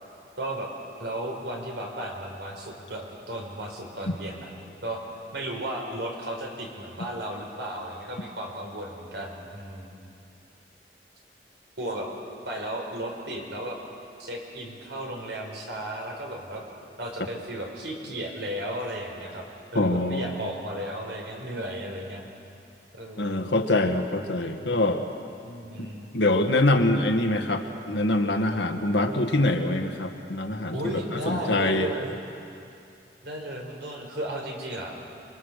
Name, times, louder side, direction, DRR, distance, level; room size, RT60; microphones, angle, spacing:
voice 1, 0.4-0.7 1.0-4.5 4.8-5.0 5.3-9.9 11.8-12.1 12.4-13.8 14.2-16.6 17.0-19.5 19.7-22.2 22.9-23.5 25.4-26.1 30.7-32.2 33.2-34.9, right 1 dB, 85° right, 0 dB, 5.0 m, -34 dB
voice 2, 19.7-20.3 23.2-25.0 25.8-25.9 26.1-30.8 31.3-31.9, left 1 dB, 90° left, 5 dB, 1.8 m, -24 dB
28.5 x 23.0 x 6.7 m, 2.6 s
head